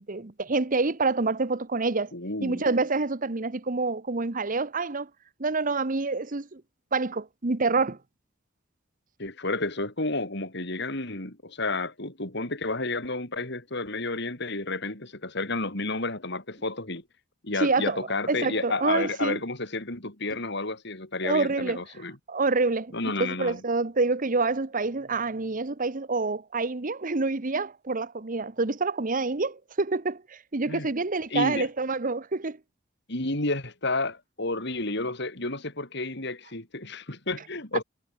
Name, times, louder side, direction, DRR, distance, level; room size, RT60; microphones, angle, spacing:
voice 1, 0.0-2.1 2.4-5.1 5.4-6.6 6.9-8.0 17.6-18.0 18.3-19.4 21.2-21.8 22.3-22.9 23.2-32.6, right 3 dB, 45° right, 1.1 m, -27 dB
voice 2, 2.1-2.6 9.2-17.0 17.4-22.2 22.9-23.6 30.7-30.9 31.3-31.7 33.1-37.8, left 2 dB, 60° left, 6.2 m, -31 dB
head